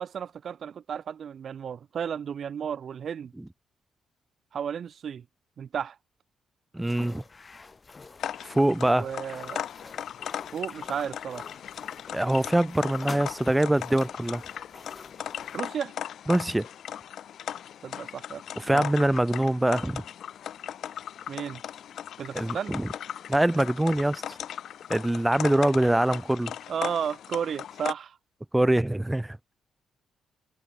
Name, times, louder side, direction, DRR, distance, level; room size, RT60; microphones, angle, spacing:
voice 1, 0.0-3.3 4.5-5.2 5.6-6.0 8.9-9.6 10.5-11.5 15.5-15.9 17.8-18.4 18.7-18.9 21.3-21.6 22.2-22.7 26.7-28.2, right 8 dB, 55° right, 1.4 m, -33 dB
voice 2, 6.7-7.2 8.4-9.1 12.1-14.4 16.3-16.7 18.6-20.0 22.3-22.9 23.3-24.4 24.9-26.5 28.5-29.4, right 1 dB, 10° right, 0.9 m, -24 dB
sound 1, 6.8-15.6, left 4 dB, 30° left, 2.2 m, -47 dB
sound 2, 8.2-27.9, left 10 dB, 65° left, 2.2 m, -38 dB
cardioid pair, 90°, 0 cm